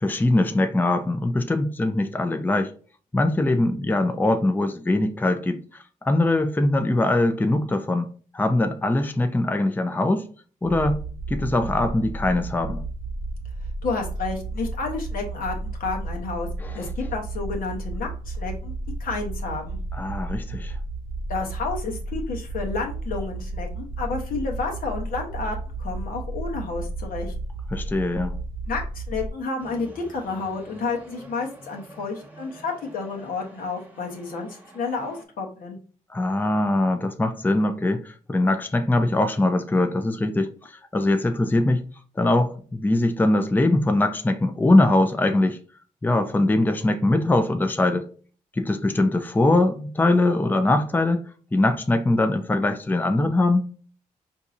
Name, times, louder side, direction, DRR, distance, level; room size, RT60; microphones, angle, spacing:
voice 1, 0.0-2.7 3.1-10.3 10.6-11.0 11.3-12.8 16.6-16.9 19.9-20.8 27.7-28.3 36.1-41.8 42.2-45.6 46.0-48.1 48.5-53.7, left 2 dB, 15° left, 0.5 m, -22 dB
sound 1, 10.6-29.3, right 2 dB, 65° right, 0.7 m, -33 dB
voice 2, 13.8-16.5 16.7-18.7 19.0-19.8 21.3-27.3 28.7-35.8, left 4 dB, 75° left, 1.0 m, -30 dB
Fade-in Pitch up, 29.6-35.2, right 1 dB, 10° right, 1.1 m, -46 dB
4.6 x 2.7 x 2.5 m
cardioid pair, 55°, 15 cm